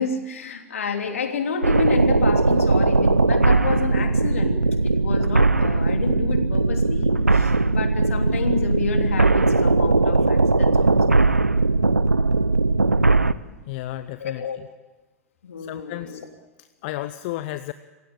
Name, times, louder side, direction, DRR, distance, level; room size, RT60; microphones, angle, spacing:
voice 1, 0.0-4.6 4.8-11.0 14.2-14.6 15.4-16.2, left 5 dB, 70° left, 5 dB, 3.3 m, -29 dB
sound 1, 1.6-13.3, right 3 dB, 90° right, 0.7 m, -19 dB
voice 2, 13.7-14.7 15.6-16.2 16.6-17.7, left 15 dB, 45° left, 13 dB, 0.8 m, -33 dB
27.5 x 16.5 x 8.8 m, 1.2 s
figure-of-eight pair, 95°, 8 cm